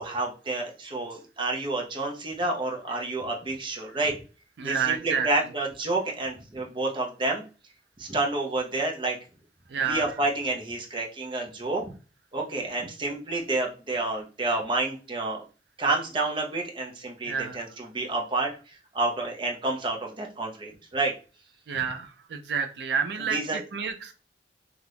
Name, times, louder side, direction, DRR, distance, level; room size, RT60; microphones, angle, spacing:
voice 1, 0.0-4.2 4.6-7.4 8.0-9.2 9.9-11.9 12.3-15.4 15.8-18.5 18.9-21.1 23.3-23.6, right 2 dB, 30° right, 0 dB, 0.6 m, -29 dB
voice 2, 4.6-5.3 9.7-10.2 17.3-17.6 21.7-24.1, right 6 dB, 75° right, 6 dB, 0.4 m, -29 dB
2.7 x 2.4 x 3.3 m, 0.35 s
head